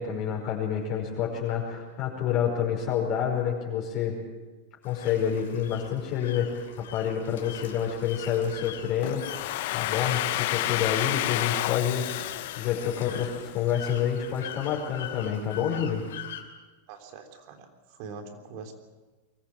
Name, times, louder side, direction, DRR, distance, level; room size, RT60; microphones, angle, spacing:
voice 1, 0.0-4.2 4.8-12.1 12.5-16.0, left 8 dB, 40° left, -2 dB, 5.2 m, -28 dB
sound 1, 4.8-16.4, left 9 dB, 85° left, 2.9 m, -43 dB
Domestic sounds home sounds, 9.0-13.8, left 16 dB, 60° left, 0.7 m, -30 dB
voice 2, 16.9-18.7, right 5 dB, 55° right, 6 dB, 3.4 m, -43 dB
23.5 x 14.5 x 8.7 m, 1.3 s
supercardioid pair, 140°, 0 cm